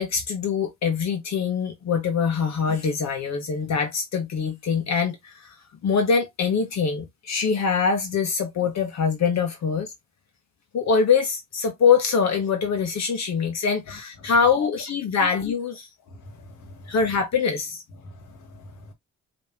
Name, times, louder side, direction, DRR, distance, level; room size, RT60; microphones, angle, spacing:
voice 1, 0.0-5.5 5.8-9.9 10.7-15.9 16.9-17.8, left 6 dB, 65° left, 1.5 m, -23 dB
voice 2, 16.1-16.9 18.0-18.9, left 3 dB, 80° left, 1.7 m, -42 dB
5.3 x 3.4 x 2.8 m
cardioid pair, 90°, 30 cm